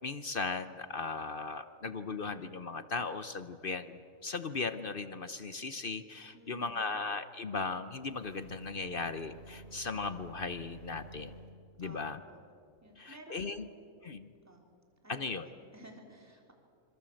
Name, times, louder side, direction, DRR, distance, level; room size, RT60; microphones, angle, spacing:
voice 1, 0.0-11.3 11.8-12.2 13.0-13.7 14.0-14.3 15.1-15.5, left 4 dB, 45° left, 11 dB, 0.9 m, -37 dB
voice 2, 6.3-7.0 11.8-12.4 12.8-13.7 14.4-14.6 15.0-16.5, right 1 dB, 10° right, 1 dB, 3.4 m, -54 dB
sound 1, 7.9-11.6, right 1 dB, 50° right, 2.7 m, -51 dB
26.5 x 26.0 x 7.8 m, 2.3 s
omnidirectional pair, 1.5 m